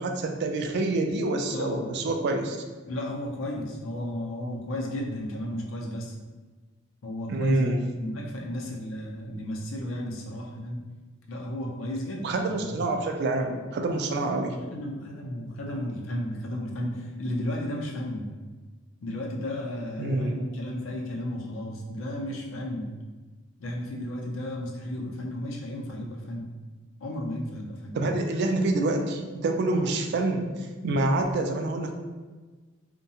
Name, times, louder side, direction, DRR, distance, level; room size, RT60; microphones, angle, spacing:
voice 1, 0.0-2.6 7.3-7.8 12.2-14.6 20.0-20.4 27.9-30.5 30.8-31.9, right 2 dB, 55° right, 4 dB, 0.3 m, -27 dB
voice 2, 1.5-1.9 2.9-6.2 7.0-10.8 11.3-12.8 14.3-18.3 19.0-22.9 23.6-26.5 27.0-28.0, left 1 dB, 70° left, -1 dB, 0.5 m, -34 dB
2.7 x 2.2 x 2.7 m, 1.3 s
head